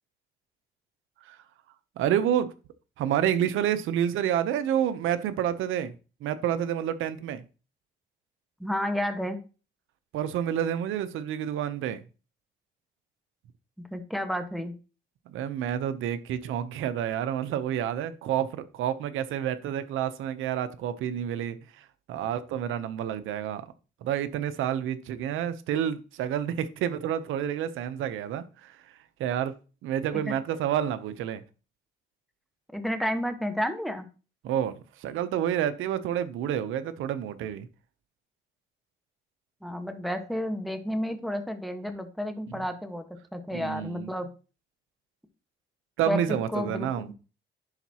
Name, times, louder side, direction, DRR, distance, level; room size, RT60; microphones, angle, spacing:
voice 1, 2.0-2.5 3.0-5.9 6.2-7.4 10.1-12.0 15.3-23.7 24.0-28.8 29.2-29.5 29.8-31.4 34.4-37.7 43.5-44.1 46.0-47.1, right 10 dB, 85° right, 0.7 m, -29 dB
voice 2, 8.6-9.4 13.9-14.7 30.1-30.3 32.7-34.1 39.6-43.0 43.3-44.3 46.0-46.9, equal, ahead, 1.2 m, -31 dB
11.0 x 4.0 x 2.9 m
cardioid pair, 90°, 20 cm